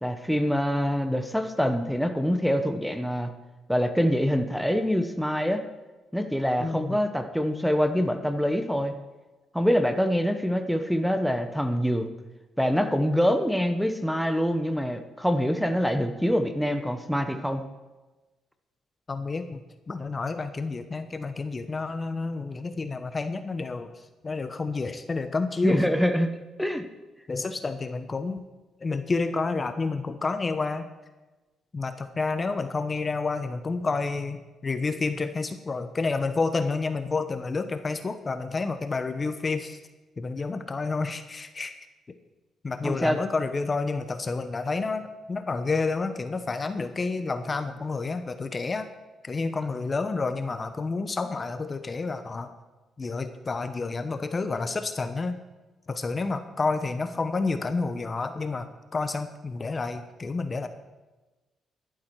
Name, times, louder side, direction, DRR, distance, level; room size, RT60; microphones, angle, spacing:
voice 1, 0.0-3.3 3.7-5.6 6.1-8.9 9.5-12.1 12.6-17.6 25.6-26.3 26.6-26.9 42.8-43.2, equal, ahead, 8 dB, 1.0 m, -25 dB
voice 2, 6.6-7.0 19.1-19.6 19.9-23.9 24.2-25.8 27.3-28.4 28.8-30.9 31.7-34.4 34.6-39.8 40.2-41.7 42.6-48.9 49.2-52.5 53.0-55.4 55.9-60.7, left 3 dB, 30° left, 9 dB, 0.9 m, -29 dB
11.5 x 11.5 x 4.7 m, 1.2 s
cardioid pair, 90°, 0 cm